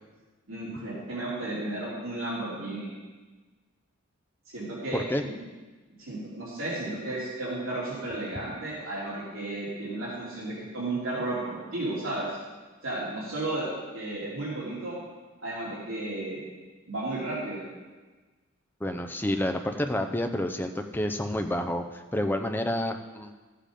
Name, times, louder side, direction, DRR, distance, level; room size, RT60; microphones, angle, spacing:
voice 1, 0.5-2.9 4.5-5.0 6.0-12.4 12.8-13.7 13.9-14.9 15.4-16.4 16.9-17.6, right 2 dB, 70° right, -7 dB, 2.9 m, -33 dB
voice 2, 4.9-5.2 18.8-23.3, left 1 dB, 10° left, 6 dB, 0.6 m, -29 dB
13.5 x 7.6 x 5.1 m, 1.3 s
head